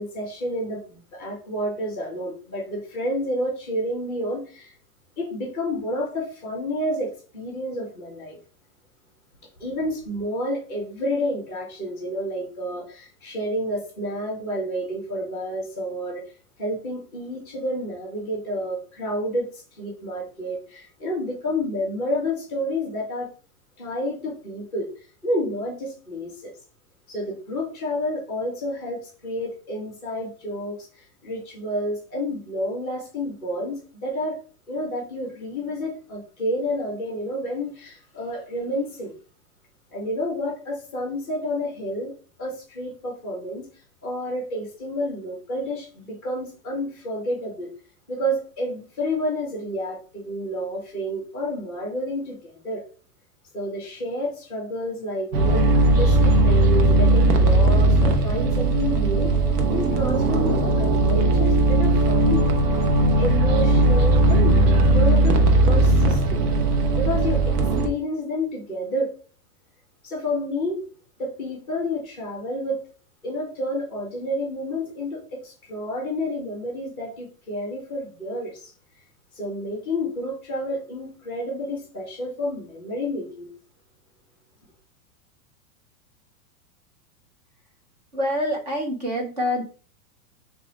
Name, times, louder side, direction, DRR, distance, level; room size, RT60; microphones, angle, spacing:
voice 1, 0.0-4.7 5.2-8.4 9.6-16.3 16.6-23.3 23.8-26.5 27.1-34.4 34.7-39.1 39.9-42.1 42.4-43.7 44.0-47.7 48.1-52.8 53.5-59.3 59.7-62.5 63.2-66.4 66.9-67.6 67.8-69.1 70.0-70.8 71.2-72.8 73.2-78.7 79.3-83.5, left 1 dB, 5° right, 0.8 m, -29 dB
sound 1, 55.3-67.9, right 2 dB, 75° right, 0.9 m, -18 dB
voice 2, 88.1-89.6, equal, 30° right, 0.4 m, -26 dB
3.2 x 2.7 x 4.2 m
supercardioid pair, 180°, 47 cm